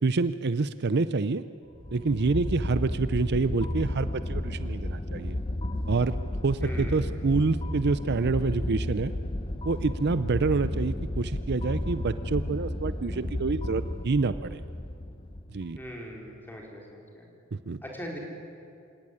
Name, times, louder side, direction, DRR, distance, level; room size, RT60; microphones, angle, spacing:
voice 1, 0.0-1.4 1.9-5.4 5.9-6.1 6.4-9.1 9.6-14.6 15.5-15.8 17.5-17.8, right 3 dB, 55° right, 13 dB, 0.6 m, -27 dB
sound 1, 1.7-15.9, left 1 dB, 25° left, 0.8 m, -33 dB
voice 2, 6.6-7.1 15.8-17.3 17.8-18.2, equal, 10° left, -1 dB, 4.7 m, -40 dB
27.0 x 17.5 x 9.9 m, 2.5 s
head